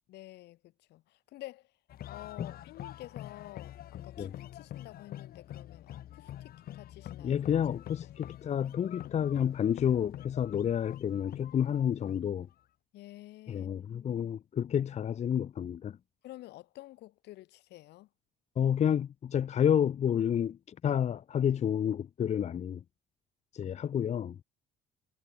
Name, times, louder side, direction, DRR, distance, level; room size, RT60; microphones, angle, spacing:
voice 1, 0.1-1.8 2.1-7.4 8.0-8.1 12.9-13.7 16.2-18.1, left 17 dB, 80° left, 5.8 m, -50 dB
sound 1, 1.9-12.5, left 12 dB, 65° left, 3.1 m, -46 dB
voice 2, 7.2-12.5 13.5-16.0 18.6-22.8 23.5-24.4, left 9 dB, 40° left, 0.8 m, -30 dB
cardioid pair, 110°, 17 cm